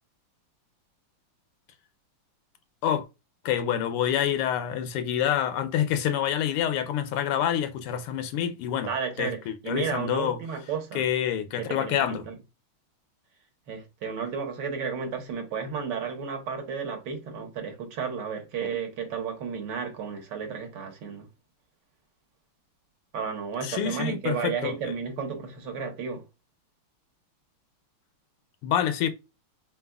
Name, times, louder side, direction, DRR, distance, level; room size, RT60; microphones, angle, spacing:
voice 1, 3.4-8.9 9.2-10.4 10.9-12.2 23.6-24.9 28.6-29.1, left 10 dB, 85° left, 1.6 m, -27 dB
voice 2, 8.8-11.1 11.6-12.3 13.7-21.3 23.1-26.2, right 6 dB, 60° right, 1.5 m, -33 dB
4.2 x 3.9 x 2.3 m
omnidirectional pair, 2.4 m